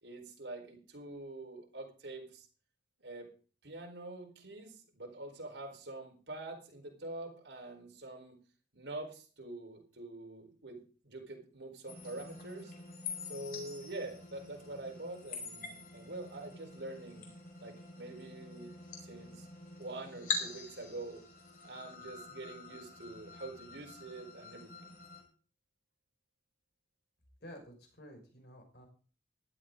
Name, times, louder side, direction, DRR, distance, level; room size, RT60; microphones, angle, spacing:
voice 1, 0.0-2.5 3.0-3.3 3.6-8.4 8.7-12.7 13.2-17.3 17.6-19.5 19.8-21.2 21.6-24.9, right 2 dB, 90° right, 2 dB, 4.4 m, -45 dB
sound 1, 11.9-25.2, left 4 dB, 50° left, 5.4 m, -45 dB
voice 2, 27.4-28.9, equal, 70° left, 3 dB, 5.6 m, -52 dB
16.0 x 12.0 x 3.9 m, 0.39 s
head